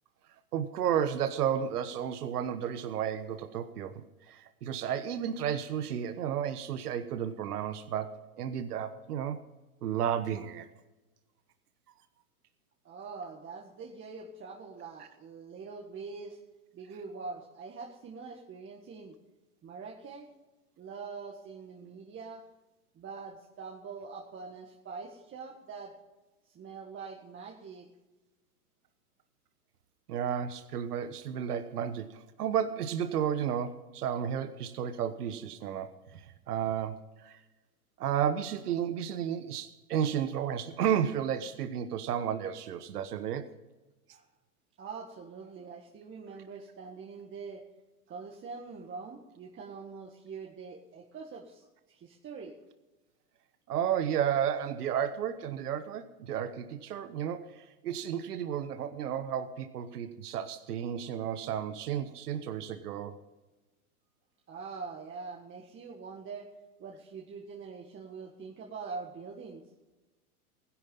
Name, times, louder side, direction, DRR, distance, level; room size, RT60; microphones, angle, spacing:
voice 1, 0.5-9.4 9.8-10.7 30.1-37.4 38.0-43.5 53.7-63.2, right 9 dB, 85° right, 10 dB, 1.2 m, -32 dB
voice 2, 12.8-16.4 16.7-19.2 19.6-20.3 20.8-22.4 23.0-25.9 26.5-27.9 44.1-44.2 44.8-47.6 48.1-52.5 64.5-66.5 66.8-69.6, right 4 dB, 25° right, 0 dB, 1.8 m, -44 dB
16.5 x 11.0 x 5.5 m, 1.1 s
hypercardioid pair, 115°, 45 cm